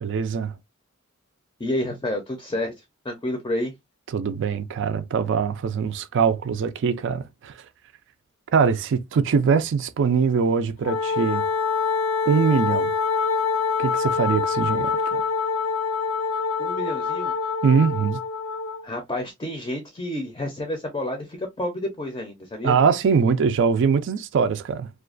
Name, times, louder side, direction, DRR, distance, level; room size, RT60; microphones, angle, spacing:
voice 1, 0.0-0.5 4.1-7.5 8.5-11.5 12.3-12.9 13.8-15.2 17.6-18.2 22.6-24.9, right 6 dB, 60° right, 0.4 m, -22 dB
voice 2, 1.6-2.7 3.0-3.7 16.6-17.3 18.8-22.8, left 1 dB, 20° left, 0.5 m, -29 dB
Wind instrument woodwind instrument, 10.8-18.8, left 5 dB, 80° left, 0.4 m, -25 dB
2.4 x 2.2 x 2.4 m
head